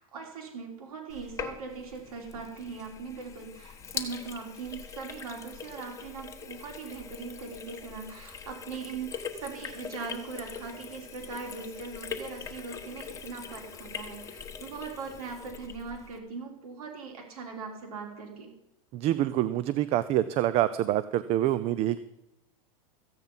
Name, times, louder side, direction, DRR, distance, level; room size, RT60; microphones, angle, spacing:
voice 1, 0.0-18.5, right 5 dB, 90° right, 1 dB, 3.6 m, -40 dB
Sink (filling or washing), 1.1-16.2, left 6 dB, 15° left, 1.4 m, -42 dB
voice 2, 18.9-22.0, right 13 dB, 35° right, 15 dB, 0.5 m, -26 dB
15.0 x 9.2 x 5.5 m, 0.88 s
supercardioid pair, 145°, 18 cm